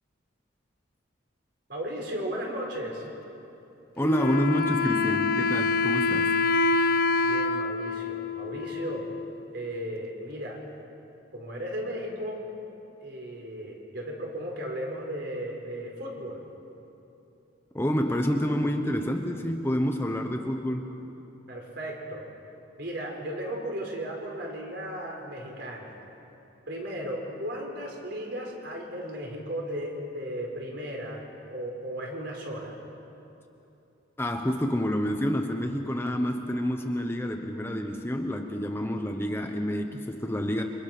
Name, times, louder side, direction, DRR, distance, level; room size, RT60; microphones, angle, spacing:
voice 1, 1.7-3.1 7.2-9.0 9.5-10.6 11.3-12.4 13.0-16.4 21.5-22.3 22.8-26.0 26.7-31.2 31.5-32.8, equal, 55° right, 0 dB, 5.0 m, -35 dB
Wind instrument woodwind instrument, 4.0-9.5, left 3 dB, 50° left, 0.7 m, -26 dB
voice 2, 4.0-6.4 17.7-20.9 34.2-40.6, equal, 10° left, 3 dB, 1.0 m, -28 dB
28.5 x 25.5 x 6.2 m, 2.9 s
head